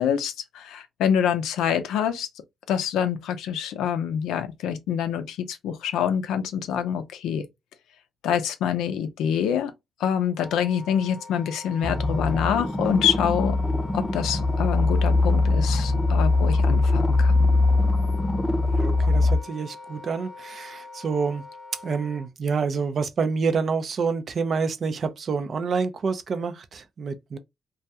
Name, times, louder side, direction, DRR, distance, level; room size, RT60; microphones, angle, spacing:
voice 1, 0.0-2.3 2.7-7.4 8.2-9.7 10.0-13.6 13.9-17.5, left 8 dB, 90° left, 0.4 m, -26 dB
Wind instrument woodwind instrument, 10.3-22.3, left 3 dB, 45° left, 0.7 m, -43 dB
sound 1, 11.8-19.4, left 2 dB, 5° left, 0.5 m, -22 dB
voice 2, 18.6-21.4 21.8-27.4, right 5 dB, 55° right, 0.4 m, -27 dB
2.3 x 2.2 x 2.7 m
cardioid pair, 80°, 0 cm